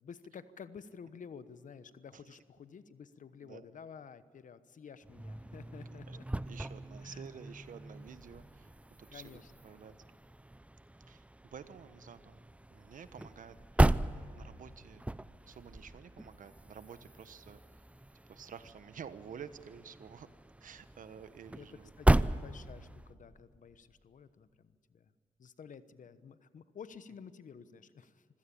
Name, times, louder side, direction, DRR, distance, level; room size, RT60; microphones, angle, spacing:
voice 1, 0.0-6.2 7.0-7.3 9.1-9.4 9.7-9.8 21.5-21.7 22.0-25.0 25.4-28.3, left 6 dB, 65° left, 13 dB, 1.1 m, -51 dB
sound 1, 5.0-23.1, right 1 dB, 10° right, 0.6 m, -36 dB
voice 2, 6.5-8.7 9.0-10.0 11.1-12.4 12.7-13.8 14.1-15.0 15.4-17.6 18.3-20.3 20.6-21.9, right 7 dB, 70° right, 12 dB, 1.2 m, -50 dB
25.0 x 16.5 x 8.6 m, 2.3 s
cardioid pair, 55°, 14 cm